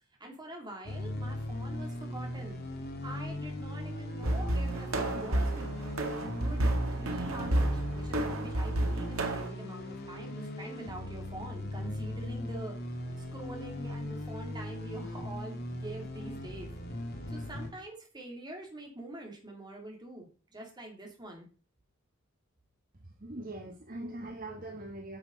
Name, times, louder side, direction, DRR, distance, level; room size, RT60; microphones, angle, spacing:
voice 1, 0.2-2.6 3.0-6.1 6.4-12.7 13.2-16.7 17.3-21.5, right 1 dB, 20° right, 1 dB, 3.3 m, -45 dB
sound 1, 0.8-17.7, left 1 dB, 50° left, 2.6 m, -39 dB
sound 2, 4.2-9.5, right 1 dB, 80° right, 1.9 m, -31 dB
voice 2, 23.0-25.2, right 1 dB, 45° right, 2 dB, 1.4 m, -42 dB
9.8 x 6.9 x 5.6 m, 0.37 s
head